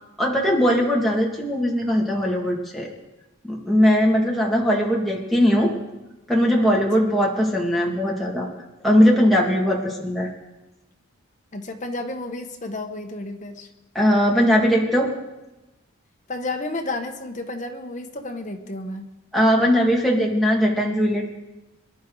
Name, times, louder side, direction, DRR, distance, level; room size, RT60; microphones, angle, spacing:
voice 1, 0.2-2.9 3.4-5.7 6.3-8.5 8.8-10.3 13.9-15.1 19.3-21.3, equal, ahead, -3 dB, 2.1 m, -19 dB
voice 2, 11.5-13.7 16.3-19.1, left 2 dB, 35° left, 4 dB, 1.2 m, -31 dB
24.0 x 11.0 x 3.9 m, 1.0 s
head